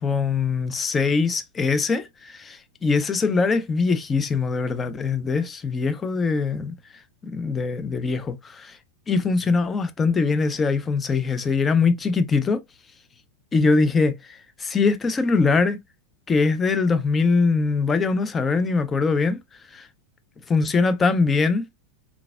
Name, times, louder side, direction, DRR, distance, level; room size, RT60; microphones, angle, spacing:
voice 1, 0.0-6.7 7.2-8.8 9.1-12.6 13.5-15.8 16.3-19.4 19.7-19.9 20.5-21.7, left 4 dB, 20° left, 0.5 m, -22 dB
3.8 x 3.5 x 2.2 m
figure-of-eight pair, 90°, 0 cm